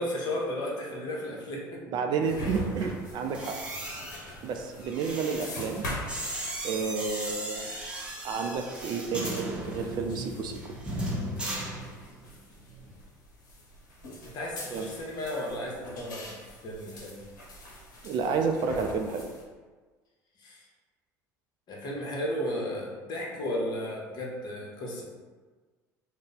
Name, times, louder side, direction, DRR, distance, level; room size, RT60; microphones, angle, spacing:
voice 1, 0.0-1.8 2.4-2.5 14.3-16.3 16.6-17.2 20.4-20.7 21.7-25.0, left 1 dB, 45° left, -2 dB, 0.9 m, -34 dB
voice 2, 1.9-3.6 4.4-5.8 6.6-7.7 8.2-10.5 14.7-14.9 18.0-19.3, right 5 dB, 50° right, 4 dB, 0.4 m, -30 dB
sound 1, 2.2-19.4, equal, 85° left, 0.7 m, -43 dB
sound 2, 3.2-12.3 12.6-12.9, right 1 dB, 10° right, 0.9 m, -37 dB
2.6 x 2.1 x 4.0 m, 1.4 s
hypercardioid pair, 70°, 10 cm